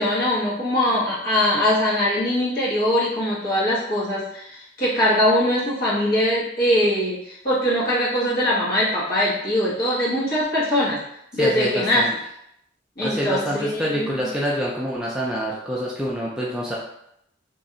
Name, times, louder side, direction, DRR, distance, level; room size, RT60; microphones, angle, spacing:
voice 1, 0.0-11.0 11.3-12.1 13.0-14.2, left 1 dB, 55° left, -7 dB, 1.3 m, -22 dB
voice 2, 11.3-12.1 13.0-16.8, equal, 5° right, -5 dB, 0.4 m, -26 dB
3.1 x 2.6 x 3.8 m, 0.77 s
head